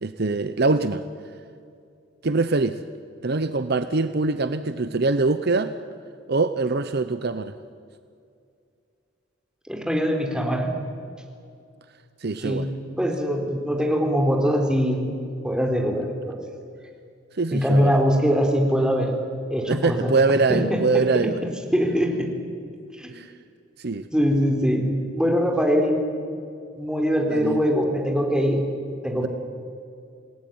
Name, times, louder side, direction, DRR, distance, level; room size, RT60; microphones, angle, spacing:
voice 1, 0.0-1.0 2.2-2.8 3.2-5.7 6.3-7.6 12.2-12.7 17.3-17.9 19.7-21.4 23.1-23.3 23.8-24.1 27.3-27.6 29.2-29.3, right 3 dB, 55° right, 11 dB, 0.8 m, -23 dB
voice 2, 9.7-10.7 12.4-12.7 13.0-15.1 15.4-16.4 17.5-19.1 19.5-20.1 20.5-20.8 21.7-22.2 23.0-23.1 24.1-26.0 26.8-28.6 29.0-29.3, equal, 5° right, 2 dB, 4.0 m, -22 dB
28.0 x 19.0 x 9.5 m, 2.4 s
head